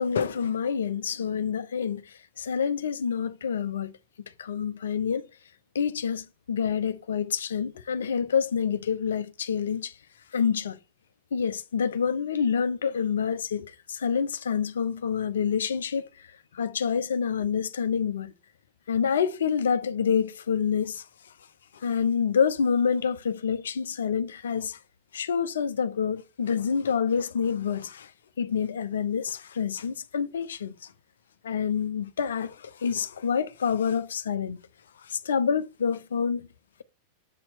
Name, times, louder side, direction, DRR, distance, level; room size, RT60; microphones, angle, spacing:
voice 1, 0.0-3.9 4.4-5.3 5.7-10.0 10.3-10.8 11.3-18.3 18.9-21.3 21.7-24.8 25.1-28.1 28.4-30.9 31.4-34.6 35.0-36.5, left 7 dB, 65° left, 0.7 m, -27 dB
7.5 x 4.2 x 4.6 m
figure-of-eight pair, 90°, 0 cm